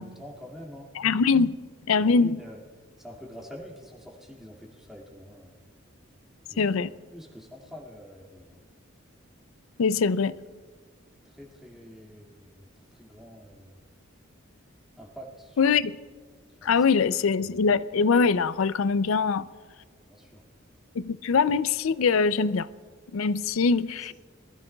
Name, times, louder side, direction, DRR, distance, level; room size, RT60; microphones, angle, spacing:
voice 1, 0.0-0.9 2.0-2.6 3.0-5.6 6.5-6.6 7.1-8.6 11.2-13.8 15.0-15.6 16.6-17.0 20.0-20.4, equal, ahead, 2.1 m, -46 dB
voice 2, 1.0-1.6 1.9-2.4 6.6-6.9 9.8-10.3 15.6-16.0 16.6-19.5 21.0-22.7 23.1-24.1, left 5 dB, 80° left, 0.4 m, -23 dB
23.5 x 15.0 x 2.3 m
head